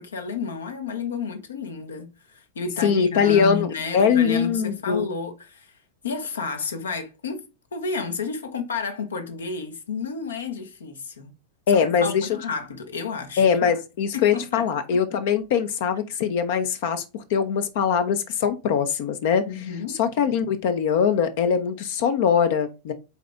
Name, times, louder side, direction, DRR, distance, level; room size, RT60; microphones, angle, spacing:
voice 1, 0.0-5.8 6.0-7.4 7.7-11.3 11.7-13.7 14.1-14.7 19.5-20.0, left 5 dB, 70° left, 1.2 m, -31 dB
voice 2, 2.8-5.1 11.7-12.3 13.4-19.5 20.0-22.9, left 7 dB, 50° left, 0.8 m, -22 dB
7.3 x 4.3 x 3.5 m
figure-of-eight pair, 90°, 0 cm